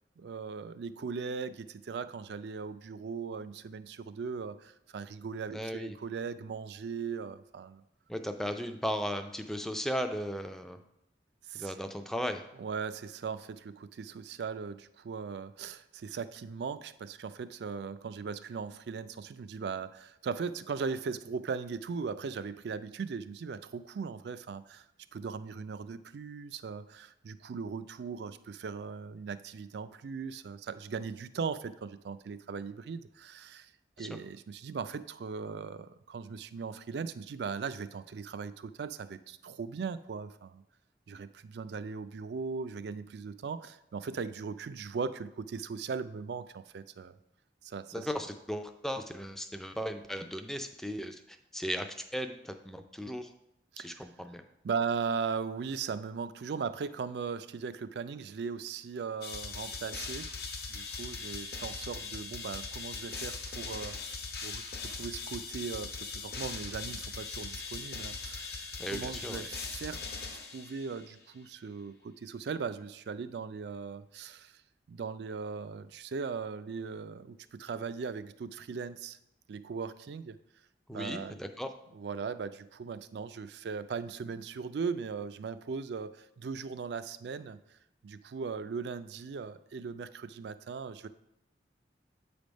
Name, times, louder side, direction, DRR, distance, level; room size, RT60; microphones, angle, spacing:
voice 1, 0.2-7.8 11.5-11.7 12.6-24.8 25.1-33.7 34.0-40.6 41.1-47.1 47.6-48.1 53.7-54.1 54.6-60.3 60.7-70.0 70.5-74.6 74.9-79.2 79.5-80.4 80.9-81.4 81.9-87.6 88.0-91.1, right 5 dB, 70° right, 13 dB, 0.4 m, -38 dB
voice 2, 5.5-5.9 8.1-10.8 11.5-12.4 34.0-34.1 47.9-51.9 52.1-53.3 53.8-54.4 68.8-69.5 80.9-81.7, equal, ahead, 7 dB, 0.3 m, -36 dB
sound 1, 59.2-71.1, left 4 dB, 60° left, 0.9 m, -40 dB
8.2 x 3.4 x 5.1 m, 0.83 s
head